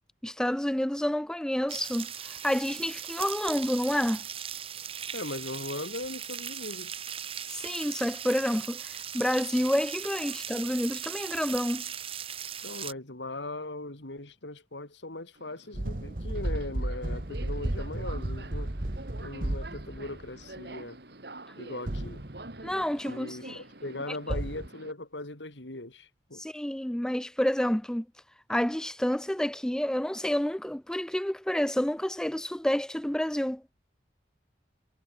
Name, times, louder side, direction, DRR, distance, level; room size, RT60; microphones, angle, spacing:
voice 1, 0.2-4.2 7.5-11.8 22.6-23.6 24.1-24.2 26.3-28.1 28.5-33.6, equal, 5° left, 0.3 m, -29 dB
sound 1, 1.7-12.9, right 9 dB, 30° right, 1.2 m, -38 dB
voice 2, 5.1-7.0 12.6-18.7 19.2-21.0 21.6-22.2 23.1-26.4, left 2 dB, 85° left, 3.2 m, -39 dB
Subway metro underground, 15.4-24.9, right 2 dB, 65° right, 2.9 m, -47 dB
sound 2, 15.7-20.4 21.9-22.7 24.3-24.7, right 1 dB, 50° right, 1.5 m, -33 dB
head